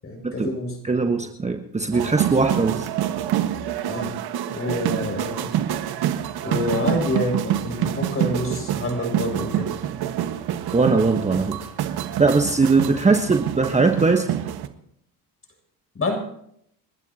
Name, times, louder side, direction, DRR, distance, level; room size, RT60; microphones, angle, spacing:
voice 1, 0.0-0.8 3.8-4.1 4.5-5.5 6.4-9.7 15.9-16.2, left 1 dB, 30° left, 3 dB, 7.6 m, -27 dB
voice 2, 0.8-2.9 10.7-11.6 12.2-14.3, right 4 dB, 15° right, 5 dB, 1.2 m, -20 dB
sound 1, 1.9-14.7, right 11 dB, 55° right, 1.6 m, -27 dB
30.0 x 12.5 x 2.9 m, 0.70 s
supercardioid pair, 90°, 44 cm